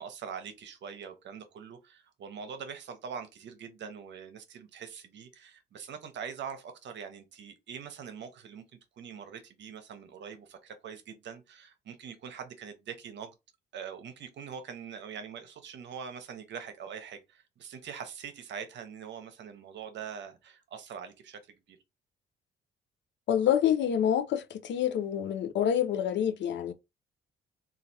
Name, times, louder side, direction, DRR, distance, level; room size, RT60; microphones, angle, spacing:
voice 1, 0.0-8.6 9.0-13.3 13.7-21.8, right 7 dB, 65° right, 0.8 m, -43 dB
voice 2, 23.3-26.7, left 9 dB, 65° left, 0.5 m, -27 dB
3.2 x 2.4 x 2.6 m
cardioid pair, 90°, 20 cm